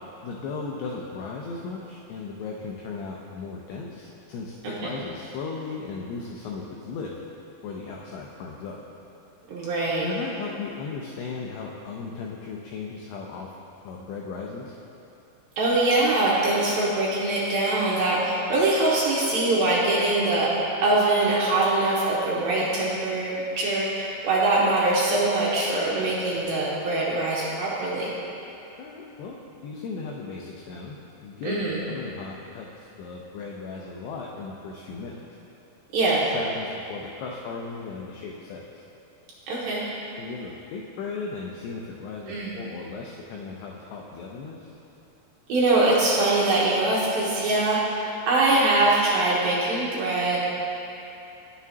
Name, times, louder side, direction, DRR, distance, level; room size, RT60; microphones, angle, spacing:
voice 1, 0.2-7.1 7.6-8.8 10.0-13.5 13.8-14.8 28.8-35.2 36.2-38.6 40.2-44.8, left 4 dB, 85° left, -2 dB, 2.4 m, -36 dB
voice 2, 9.5-10.1 15.6-28.1 31.5-31.8 35.9-36.2 39.5-39.8 42.3-42.5 45.5-50.4, right 2 dB, 80° right, -6 dB, 2.1 m, -23 dB
11.0 x 7.1 x 2.8 m, 2.9 s
omnidirectional pair, 5.3 m